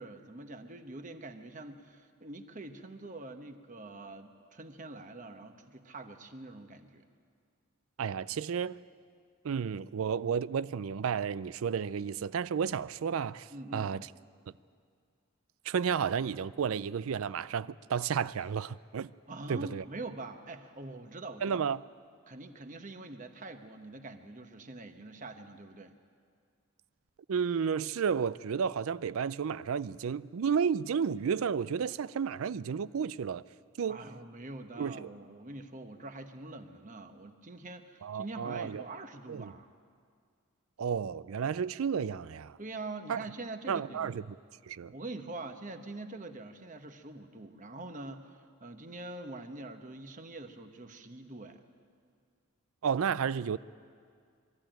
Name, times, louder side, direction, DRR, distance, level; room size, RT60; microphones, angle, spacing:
voice 1, 0.0-7.0 13.5-13.9 19.3-21.6 22.3-26.0 33.8-39.7 42.6-44.2 44.9-51.6, right 2 dB, 35° right, 1.1 m, -44 dB
voice 2, 8.0-8.8 9.4-14.1 15.7-19.1 19.5-19.8 21.4-21.8 27.3-33.4 33.8-34.0 34.8-35.1 38.0-38.8 39.3-39.5 40.8-42.6 43.1-43.2 43.7-44.2 44.7-44.9 52.8-53.6, right 7 dB, 75° right, 0.4 m, -32 dB
22.5 x 13.5 x 9.0 m
head